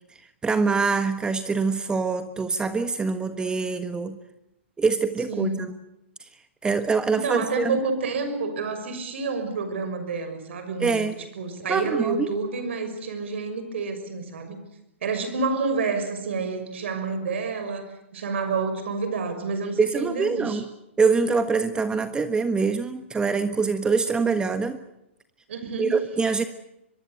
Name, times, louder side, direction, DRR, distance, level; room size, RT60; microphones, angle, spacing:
voice 1, 0.4-4.2 4.8-5.7 6.6-7.8 10.8-11.1 11.7-12.3 19.8-20.7 21.0-24.8 25.8-26.4, right 4 dB, 10° right, 10 dB, 1.4 m, -24 dB
voice 2, 5.3-5.7 7.1-14.6 15.0-20.6 25.5-26.0, right 4 dB, 65° right, 9 dB, 6.3 m, -29 dB
23.5 x 23.5 x 8.2 m, 0.85 s
hypercardioid pair, 115°, 7 cm